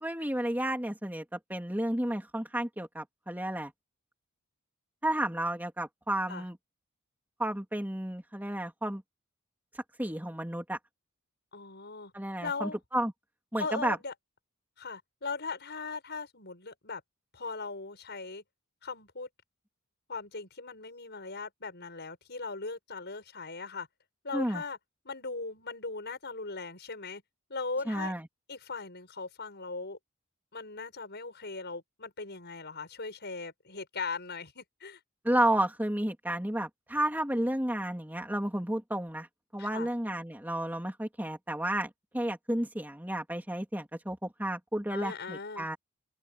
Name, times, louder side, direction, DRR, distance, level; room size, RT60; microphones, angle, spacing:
voice 1, 0.0-3.7 5.0-6.6 7.4-9.0 9.7-10.8 12.1-13.1 13.5-14.0 24.3-24.6 27.9-28.2 35.2-39.3 39.5-45.8, right 1 dB, 10° right, 2.8 m, -32 dB
voice 2, 11.5-12.1 12.4-12.8 13.6-14.1 14.8-17.0 17.3-18.4 18.8-19.3 20.1-23.9 24.2-24.8 25.0-27.2 27.5-28.1 28.5-30.0 30.5-35.0 39.6-39.9 44.9-45.7, left 4 dB, 50° left, 7.3 m, -39 dB
open air
head